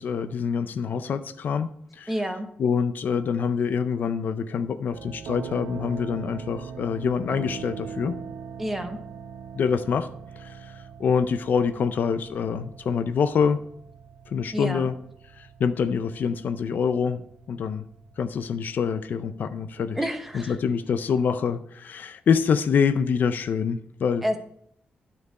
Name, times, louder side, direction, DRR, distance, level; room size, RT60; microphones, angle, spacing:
voice 1, 0.0-2.1 2.6-8.2 9.5-10.1 10.4-13.6 14.3-15.0 15.4-17.9 18.2-20.0 20.3-24.2, left 6 dB, 60° left, 12 dB, 0.4 m, -26 dB
voice 2, 2.1-2.5 8.6-9.0 14.5-14.9 20.0-20.6 24.2-24.4, equal, 5° right, 7 dB, 0.9 m, -29 dB
sound 1, 4.9-21.4, right 7 dB, 80° right, 0.5 m, -42 dB
9.7 x 4.5 x 4.7 m, 0.69 s
wide cardioid pair, 125°, 3 cm